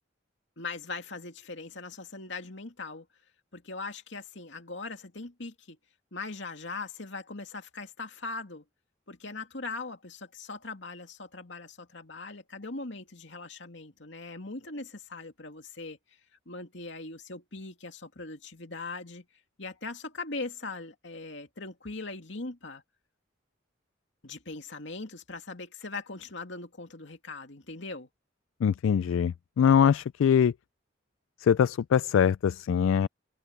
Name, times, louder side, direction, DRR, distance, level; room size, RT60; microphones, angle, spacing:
voice 1, 0.6-3.1 3.5-5.8 6.1-8.6 9.1-16.0 16.5-19.3 19.6-22.8 24.2-28.1, left 3 dB, 65° left, 2.6 m, -40 dB
voice 2, 28.6-30.5 31.4-33.1, left 8 dB, 85° left, 0.3 m, -23 dB
head